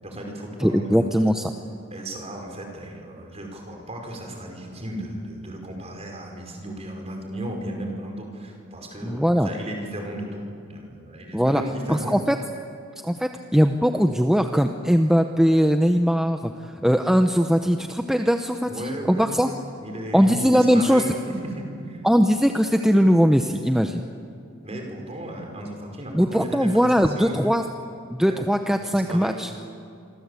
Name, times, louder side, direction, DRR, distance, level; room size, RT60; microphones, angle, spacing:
voice 1, 0.0-1.3 1.9-12.2 18.7-19.5 19.8-22.0 24.6-27.6 28.2-28.4 28.8-29.4, right 1 dB, 30° right, 2 dB, 5.2 m, -35 dB
voice 2, 0.6-1.5 9.0-9.5 11.3-11.6 11.9-12.3 13.0-16.5 16.8-19.5 20.1-21.0 22.0-24.0 26.1-27.6 28.1-29.5, equal, ahead, 6 dB, 0.8 m, -20 dB
27.0 x 24.5 x 8.4 m, 2.5 s
head